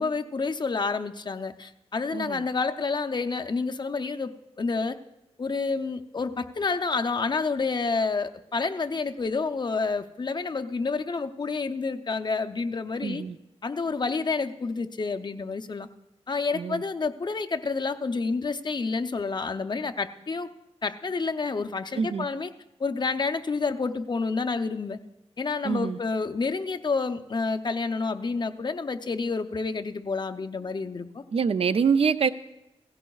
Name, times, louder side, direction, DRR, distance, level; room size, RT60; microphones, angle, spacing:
voice 1, 0.0-5.0 5.4-13.2 13.6-15.9 16.3-20.5 20.8-22.5 22.8-25.0 25.4-31.2, left 4 dB, 40° left, 7 dB, 0.5 m, -29 dB
voice 2, 2.1-2.4 13.0-13.4 16.5-16.8 22.0-22.3 25.6-26.0 31.3-32.3, right 6 dB, 60° right, 13 dB, 0.4 m, -25 dB
17.0 x 15.5 x 2.3 m, 0.89 s
wide cardioid pair, 105°, 11 cm